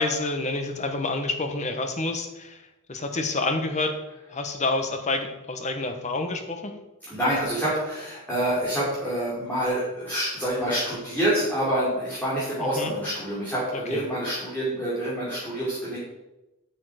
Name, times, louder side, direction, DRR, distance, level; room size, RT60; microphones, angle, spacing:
voice 1, 0.0-2.6 2.9-4.0 4.3-6.7 12.6-12.9 13.9-14.1, left 2 dB, 35° left, 6 dB, 1.1 m, -28 dB
voice 2, 7.1-16.0, right 1 dB, 10° left, -10 dB, 3.2 m, -27 dB
9.2 x 6.9 x 5.0 m, 0.98 s
head